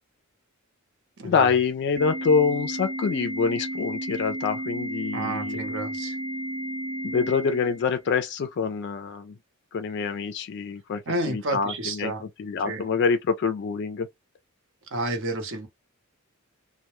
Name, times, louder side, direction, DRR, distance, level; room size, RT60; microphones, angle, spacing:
voice 1, 1.2-5.6 7.0-9.4 9.7-14.1, left 5 dB, 50° left, 0.3 m, -26 dB
Organ, 2.0-8.0, right 1 dB, 75° right, 1.0 m, -33 dB
voice 2, 5.1-6.2 11.1-12.2 12.6-12.8 14.9-15.7, right 2 dB, 60° right, 0.8 m, -30 dB
2.1 x 2.1 x 2.9 m
head